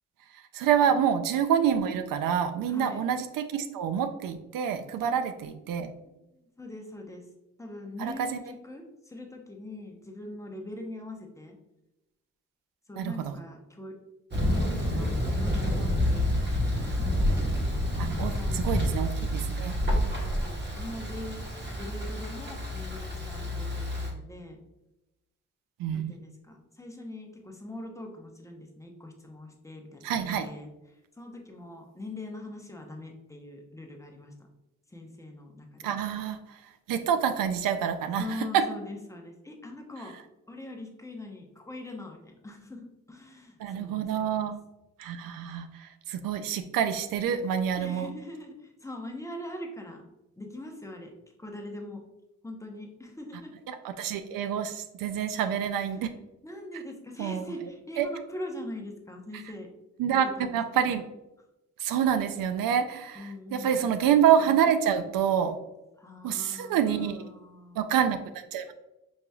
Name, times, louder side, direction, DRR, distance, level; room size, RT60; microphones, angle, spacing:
voice 1, 0.5-5.9 8.0-8.4 13.0-13.4 18.0-19.7 25.8-26.1 30.0-30.5 35.8-36.6 36.9-38.7 40.0-40.2 43.6-44.6 45.0-48.1 53.7-56.1 56.7-56.8 57.2-57.7 58.0-58.1 59.3-59.5 60.0-60.3 60.5-61.0 61.8-65.6 66.2-67.3 67.8-68.7, right 8 dB, 80° right, 9 dB, 0.5 m, -27 dB
voice 2, 2.7-3.0 5.0-5.1 6.6-7.2 7.6-11.6 12.9-13.9 14.5-16.9 18.2-18.7 19.8-21.4 21.8-24.6 25.9-30.7 31.2-34.3 34.9-35.9 38.2-40.1 40.5-42.8 43.1-44.5 47.8-48.6 48.8-50.0 50.4-51.1 51.4-52.0 52.4-53.5 56.4-59.7 60.4-60.5 63.2-64.0 66.0-66.8 67.3-67.8, left 1 dB, 10° left, 2 dB, 0.7 m, -42 dB
Thunder, 14.3-24.1, left 1 dB, 35° right, 1.2 m, -28 dB
5.4 x 3.1 x 2.3 m, 0.96 s
cardioid pair, 80°, 33 cm